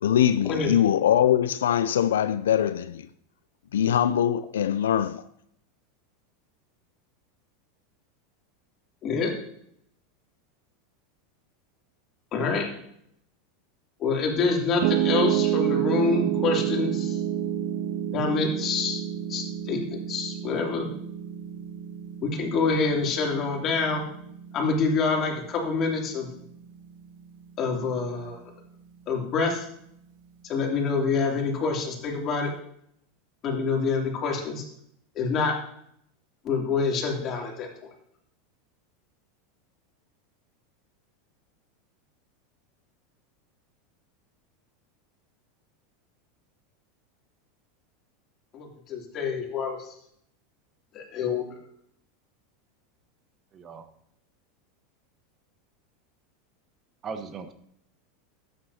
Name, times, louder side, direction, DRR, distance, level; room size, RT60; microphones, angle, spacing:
voice 1, 0.0-3.1 3.7-5.2, left 10 dB, 85° left, 0.4 m, -22 dB
voice 2, 12.3-12.7 14.0-17.2 18.1-19.0 19.3-19.8 20.1-20.9 22.2-24.0 24.5-26.3 27.6-28.4 29.1-29.6 30.4-32.5 33.4-34.6 35.1-35.5 36.4-37.7 48.5-50.0 50.9-51.4, left 4 dB, 40° left, 3.0 m, -26 dB
Piano, 14.8-27.0, right 11 dB, 65° right, 0.5 m, -29 dB
voice 3, 53.5-53.8 57.0-57.5, right 5 dB, 35° right, 1.1 m, -37 dB
13.0 x 9.2 x 2.8 m
hypercardioid pair, 100°, 0 cm